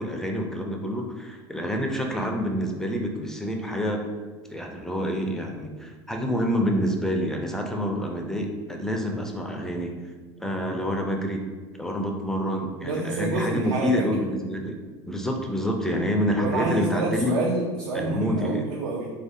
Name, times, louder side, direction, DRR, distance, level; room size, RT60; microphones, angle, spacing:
voice 1, 0.0-4.0 4.5-10.0 10.4-11.4 11.7-14.8 15.1-17.3 17.9-18.6, equal, 5° left, 2 dB, 0.4 m, -27 dB
voice 2, 12.8-13.9 16.4-19.1, right 3 dB, 75° right, -3 dB, 0.5 m, -28 dB
3.1 x 2.5 x 2.6 m, 1.4 s
hypercardioid pair, 90°, 15 cm